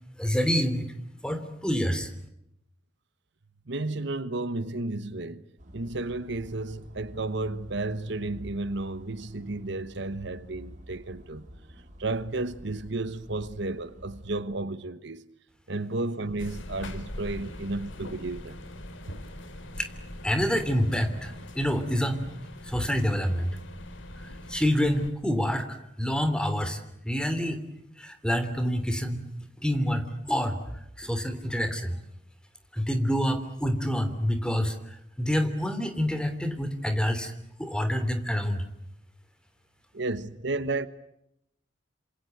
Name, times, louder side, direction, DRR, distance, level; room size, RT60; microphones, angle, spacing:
voice 1, 0.2-0.9 1.2-2.1 19.8-19.9 20.2-22.2 22.6-23.5 24.2-27.6 28.0-29.2 29.6-30.6 31.0-32.0 32.7-37.3 37.6-38.6, equal, 5° left, 3.1 m, -27 dB
voice 2, 3.7-5.4 5.7-11.5 12.0-15.2 15.7-18.6 39.9-40.9, right 2 dB, 65° right, 1.2 m, -32 dB
sound 1, 5.6-14.4, equal, 45° right, 5.0 m, -49 dB
sound 2, 16.4-25.1, left 1 dB, 75° left, 2.7 m, -42 dB
27.5 x 27.0 x 7.9 m
head